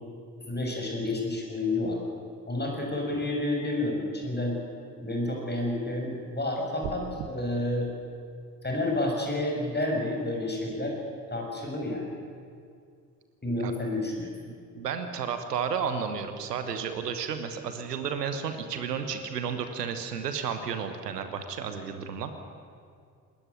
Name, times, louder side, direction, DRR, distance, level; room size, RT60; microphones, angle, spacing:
voice 1, 0.4-2.0 2.5-4.6 5.0-7.9 8.6-10.9 11.3-12.1 13.4-14.3, left 2 dB, 20° left, 0 dB, 6.7 m, -30 dB
sound 1, 6.8-7.3, right 10 dB, 50° right, 1.3 m, -37 dB
voice 2, 14.5-22.3, right 6 dB, 80° right, 8 dB, 1.3 m, -32 dB
20.0 x 17.0 x 9.5 m, 2.3 s
figure-of-eight pair, 40°, 47 cm